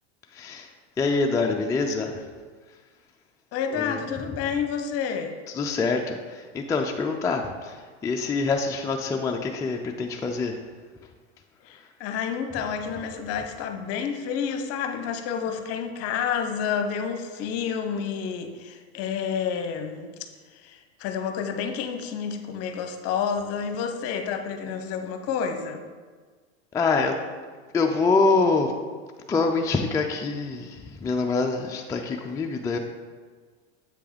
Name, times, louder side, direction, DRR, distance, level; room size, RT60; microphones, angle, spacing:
voice 1, 0.3-0.7 1.0-2.3 3.7-4.4 5.5-10.6 11.7-11.9 26.7-27.1 27.7-28.7 29.3-32.8, left 4 dB, 10° left, 2 dB, 0.3 m, -25 dB
voice 2, 3.5-5.4 11.6-20.1 20.5-25.8, left 7 dB, 50° left, 7 dB, 0.8 m, -29 dB
7.8 x 3.4 x 5.0 m, 1.5 s
hypercardioid pair, 110°, 32 cm